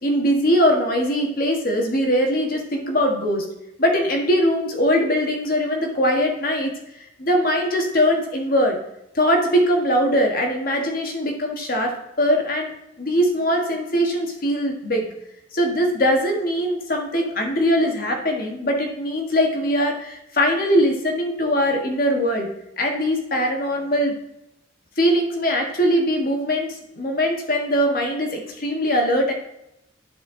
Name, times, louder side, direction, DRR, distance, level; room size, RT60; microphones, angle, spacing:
voice 1, 0.0-3.5 3.8-6.7 7.2-8.8 9.1-12.7 13.0-15.1 15.5-22.5 22.8-24.1 25.0-29.3, equal, 50° left, 3 dB, 1.4 m, -21 dB
11.0 x 4.4 x 3.8 m, 0.85 s
head